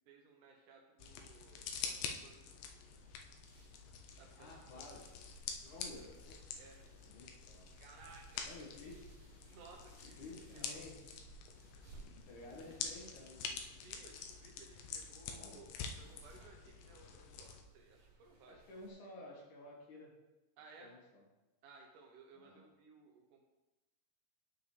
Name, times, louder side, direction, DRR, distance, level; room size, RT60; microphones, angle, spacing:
voice 1, 0.1-2.4 4.2-5.0 6.6-6.8 7.8-8.7 9.4-10.8 13.7-18.6 20.6-20.9 21.6-23.4, right 4 dB, 85° right, 1 dB, 1.8 m, -60 dB
sound 1, 1.0-17.6, left 6 dB, 80° left, 2.1 m, -47 dB
sound 2, 2.2-18.9, right 3 dB, 55° right, 3.2 m, -62 dB
voice 2, 4.4-5.0 5.6-6.5 7.0-7.7 8.4-9.3 10.2-11.0 12.3-13.6 15.2-15.6 18.5-20.1 20.8-21.2 22.3-22.6, left 2 dB, 60° left, -2 dB, 2.6 m, -53 dB
12.0 x 4.8 x 3.2 m, 1.0 s
omnidirectional pair, 4.7 m